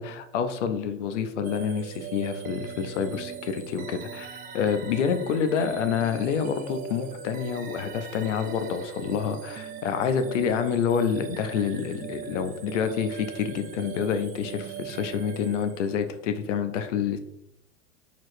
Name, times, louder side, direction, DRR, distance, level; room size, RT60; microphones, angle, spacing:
voice 1, 0.0-17.2, left 7 dB, 75° left, 9 dB, 0.7 m, -28 dB
sound 1, 1.4-16.2, right 8 dB, 25° right, 0.4 m, -40 dB
4.6 x 4.2 x 2.6 m, 0.80 s
hypercardioid pair, 90°, 37 cm